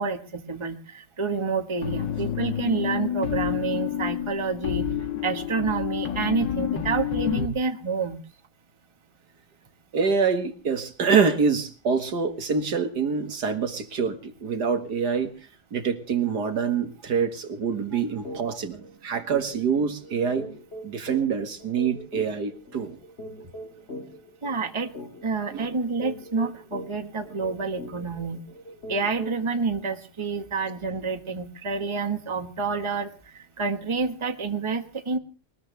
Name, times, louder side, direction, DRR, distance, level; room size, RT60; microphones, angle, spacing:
voice 1, 0.0-4.8 5.2-8.2 17.9-18.0 18.5-18.6 24.4-28.4 28.9-35.2, right 4 dB, 15° right, 6 dB, 1.4 m, -28 dB
sound 1, 1.8-7.5, left 9 dB, 80° left, 2.2 m, -29 dB
voice 2, 9.9-15.3 15.7-20.5 20.8-23.0 25.5-25.7, right 6 dB, 65° right, 8 dB, 2.1 m, -25 dB
sound 2, 18.2-18.4 18.8-18.9 19.3-29.5, equal, 35° left, 3.0 m, -41 dB
21.0 x 20.5 x 3.4 m, 0.37 s
omnidirectional pair, 1.9 m